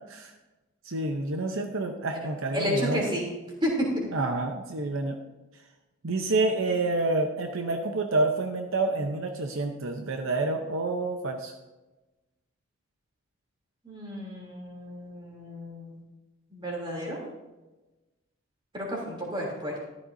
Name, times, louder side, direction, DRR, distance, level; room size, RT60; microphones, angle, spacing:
voice 1, 0.8-3.0 4.1-5.2 6.0-11.5, right 2 dB, 70° right, 4 dB, 0.8 m, -28 dB
voice 2, 2.5-3.2 3.6-3.7 3.9-4.1 13.8-16.0 16.5-17.2 18.7-19.8, left 1 dB, 25° right, -3 dB, 3.0 m, -32 dB
14.0 x 12.0 x 2.7 m, 1.1 s
head